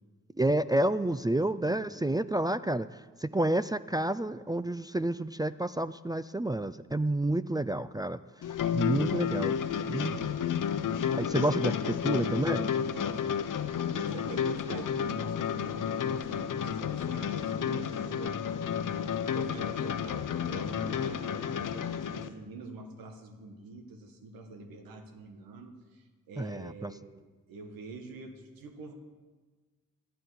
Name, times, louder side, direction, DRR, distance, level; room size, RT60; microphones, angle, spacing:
voice 1, 0.4-2.9 3.2-8.2 8.7-9.6 9.9-10.3 11.2-12.7 26.4-26.9, right 1 dB, 10° right, 12 dB, 0.4 m, -29 dB
voice 2, 1.6-2.2 12.8-13.5 13.9-18.4 19.3-28.9, right 3 dB, 90° right, 6 dB, 1.3 m, -45 dB
sound 1, 8.4-22.3, left 8 dB, 65° left, 0.8 m, -31 dB
13.5 x 11.5 x 4.8 m, 1.3 s
supercardioid pair, 40°, 34 cm